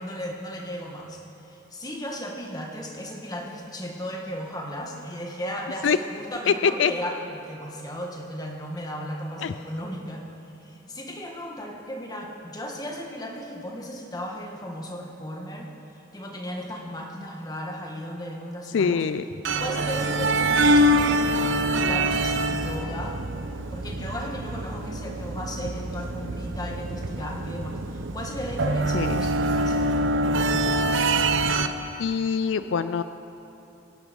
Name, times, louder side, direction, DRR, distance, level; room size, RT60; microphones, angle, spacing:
voice 1, 0.0-10.3 10.6-19.0 19.6-21.3 21.7-23.2 23.7-30.0 30.3-31.0, equal, 20° left, 0 dB, 1.7 m, -35 dB
voice 2, 6.5-6.9 9.4-9.5 18.7-19.2 28.9-29.2 32.0-33.0, left 6 dB, 75° left, 12 dB, 0.4 m, -23 dB
sound 1, 19.4-31.7, right 1 dB, 80° right, 0.8 m, -25 dB
23.0 x 11.0 x 5.3 m, 3.0 s
head